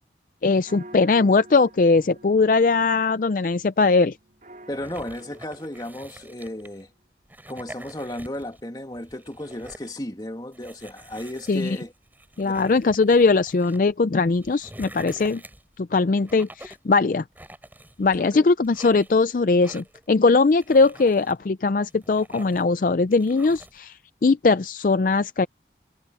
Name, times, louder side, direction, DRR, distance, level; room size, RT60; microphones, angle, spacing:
voice 1, 0.4-4.2 11.5-11.7 12.4-15.4 15.8-17.2 18.0-25.5, left 3 dB, 50° left, 0.4 m, -20 dB
sound 1, 0.6-6.8, right 1 dB, 45° right, 5.2 m, -49 dB
voice 2, 4.7-6.9 7.5-11.9 12.4-12.7 18.1-18.5, left 1 dB, 25° left, 2.5 m, -34 dB
sound 2, 4.7-6.8 7.2-8.6 8.9-9.9 10.5-13.8 14.2-15.8 16.2-16.9 17.3-18.3 18.6-19.2 19.6-20.1 20.5-21.3 21.8-22.7 23.1-23.8, right 1 dB, 10° right, 6.8 m, -46 dB
head